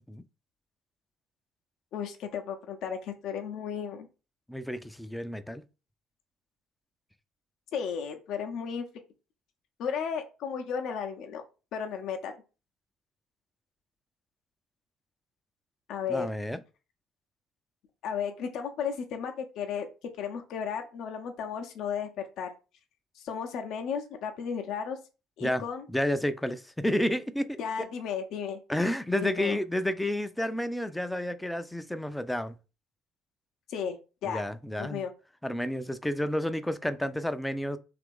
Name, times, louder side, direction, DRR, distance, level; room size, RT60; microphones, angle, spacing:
voice 1, 1.9-4.1 7.7-8.8 9.8-11.4 11.7-12.4 15.9-16.3 18.0-19.9 20.2-22.1 22.4-22.5 23.2-25.0 25.4-25.8 27.6-28.6 29.2-29.6 33.7-34.4 34.8-35.1, left 7 dB, 60° left, 0.5 m, -34 dB
voice 2, 4.5-5.6 16.1-16.6 25.4-25.6 25.9-27.9 28.7-32.6 34.2-35.0 35.4-37.8, left 1 dB, 5° left, 0.4 m, -30 dB
2.9 x 2.4 x 3.4 m
figure-of-eight pair, 55°, 0 cm